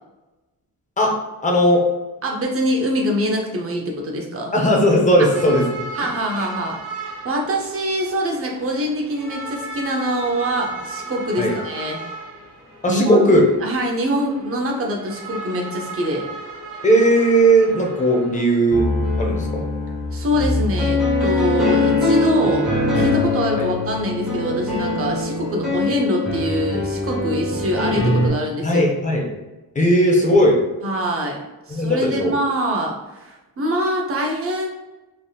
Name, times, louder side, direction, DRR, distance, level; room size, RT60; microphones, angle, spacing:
voice 1, 1.4-1.8 4.5-5.9 11.4-11.5 12.8-13.4 16.8-18.9 19.2-19.7 23.5-23.7 28.6-29.3 29.8-30.6 31.7-32.4, right 1 dB, 20° left, 0 dB, 0.4 m, -17 dB
voice 2, 2.2-4.5 5.2-5.3 6.0-6.8 7.2-12.0 12.9-13.2 13.6-16.3 20.1-22.7 22.9-28.9 30.8-31.4 31.7-34.7, equal, 40° right, 0 dB, 0.5 m, -24 dB
sound 1, 5.3-18.6, right 2 dB, 85° right, 0.9 m, -36 dB
sound 2, 18.7-28.3, left 2 dB, ahead, 0.9 m, -22 dB
3.3 x 2.7 x 2.3 m, 1.1 s
wide cardioid pair, 170°, 37 cm